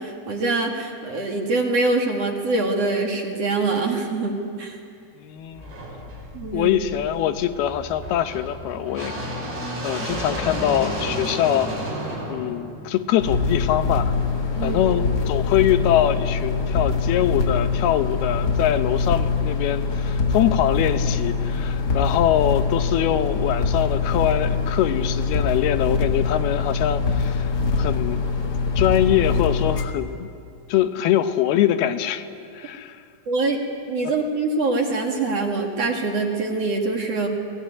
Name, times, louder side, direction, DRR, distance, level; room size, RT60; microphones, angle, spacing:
voice 1, 0.0-4.8 6.3-6.7 14.6-14.8 33.3-33.6 33.9-37.3, right 3 dB, 45° right, 1 dB, 2.8 m, -24 dB
voice 2, 5.2-5.7 6.5-9.1 9.8-11.7 12.3-14.1 14.6-27.5 27.8-28.2 28.8-30.3 30.7-32.3 32.5-33.0, left 11 dB, 80° left, 9 dB, 2.9 m, -23 dB
sound 1, 5.5-13.6, equal, 85° right, 9.0 m, -32 dB
sound 2, 13.2-29.8, left 4 dB, 55° left, 1.1 m, -23 dB
27.0 x 19.0 x 9.5 m, 2.4 s
omnidirectional pair, 4.5 m